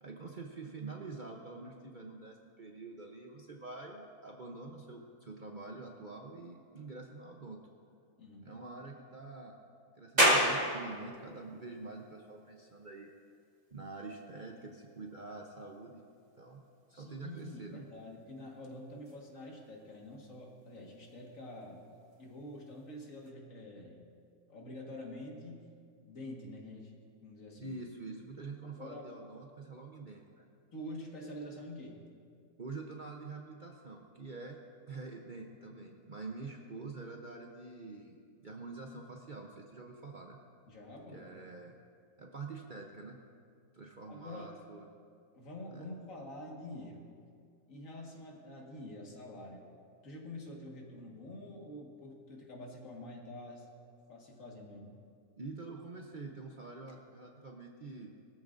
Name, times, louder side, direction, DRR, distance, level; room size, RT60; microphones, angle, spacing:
voice 1, 0.0-7.6 8.4-9.5 10.0-13.1 13.7-16.0 16.3-17.9 27.6-30.5 32.6-34.6 34.9-40.4 41.1-41.7 42.2-43.2 43.7-44.8 45.7-45.9 55.4-58.1, right 3 dB, 45° right, 1 dB, 0.7 m, -46 dB
voice 2, 8.2-8.6 16.9-21.8 22.2-24.0 24.5-25.7 26.0-27.8 28.8-29.0 30.7-32.0 40.7-41.4 44.1-44.6 45.3-47.1 47.7-49.7 50.0-53.7 54.1-55.0, left 1 dB, 60° left, -1 dB, 2.1 m, -47 dB
sound 1, 10.2-23.3, equal, 25° right, 2.1 m, -37 dB
20.0 x 13.5 x 2.6 m, 2.3 s
omnidirectional pair, 1.6 m